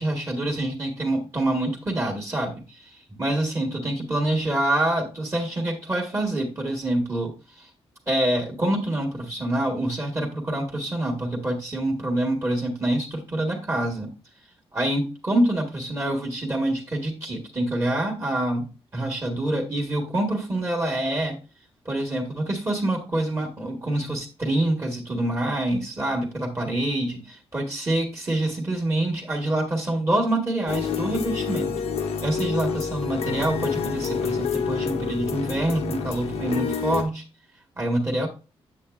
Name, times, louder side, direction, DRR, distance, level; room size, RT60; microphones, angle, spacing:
voice 1, 0.0-7.7 8.1-14.1 14.7-21.4 21.8-31.7 32.2-37.2 37.8-38.3, right 1 dB, 25° right, 2 dB, 1.5 m, -26 dB
sound 1, 30.7-37.0, left 5 dB, 85° left, 1.0 m, -28 dB
8.3 x 7.3 x 2.4 m, 0.31 s
wide cardioid pair, 130°, 10 cm